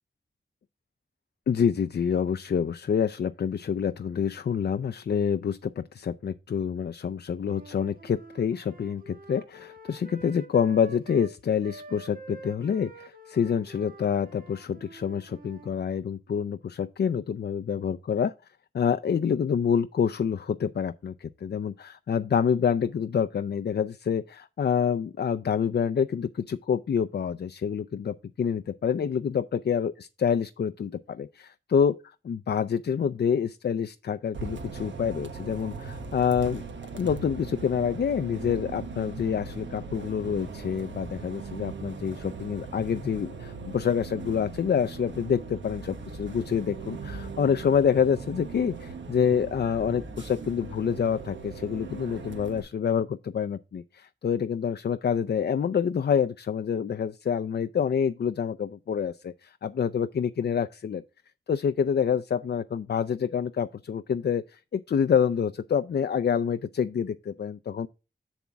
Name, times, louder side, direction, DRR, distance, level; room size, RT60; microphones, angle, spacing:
voice 1, 1.5-18.3 18.7-32.0 32.3-36.6 36.9-61.0 61.5-67.9, left 7 dB, 65° left, 0.5 m, -27 dB
Wind instrument woodwind instrument, 7.4-15.7, right 1 dB, 50° right, 1.4 m, -47 dB
Bus, 34.3-52.6, right 4 dB, 90° right, 1.2 m, -39 dB
7.3 x 7.1 x 3.4 m
cardioid pair, 55°, 19 cm